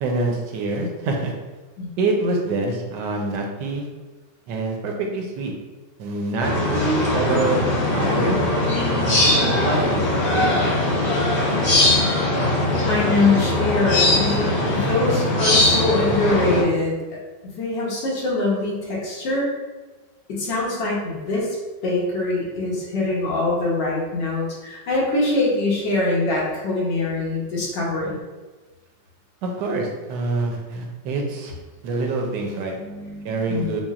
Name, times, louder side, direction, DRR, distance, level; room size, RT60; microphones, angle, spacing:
voice 1, 0.0-1.3 2.0-3.9 4.5-5.5 6.0-8.4 9.0-10.1 10.3-10.8 29.4-31.6 31.8-32.8 33.2-33.8, right 3 dB, 85° right, 1 dB, 1.2 m, -25 dB
sound 1, 6.4-16.6, left 1 dB, 45° left, 1.1 m, -20 dB
voice 2, 12.8-17.2 17.6-19.5 20.3-21.6 21.8-28.2 32.7-33.7, left 2 dB, 80° left, -4 dB, 1.6 m, -23 dB
5.8 x 2.0 x 2.4 m, 1.2 s
omnidirectional pair, 1.9 m